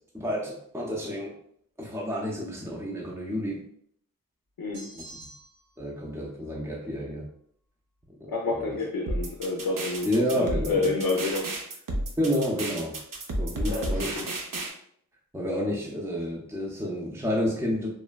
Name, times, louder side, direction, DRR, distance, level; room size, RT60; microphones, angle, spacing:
voice 1, 0.1-1.3 1.8-3.6 4.9-5.0 5.8-7.2 8.2-8.8 10.0-10.9 12.2-12.9 13.4-14.1 15.3-17.9, equal, 10° right, -3 dB, 0.6 m, -30 dB
sound 1, 4.7-5.7, right 1 dB, 85° right, 1.5 m, -46 dB
voice 2, 8.3-11.5 13.7-14.3, left 3 dB, 75° left, 0 dB, 0.5 m, -29 dB
sound 2, 9.1-14.7, right 1 dB, 65° right, 0.6 m, -31 dB
3.2 x 2.2 x 2.2 m, 0.66 s
cardioid pair, 50°, 35 cm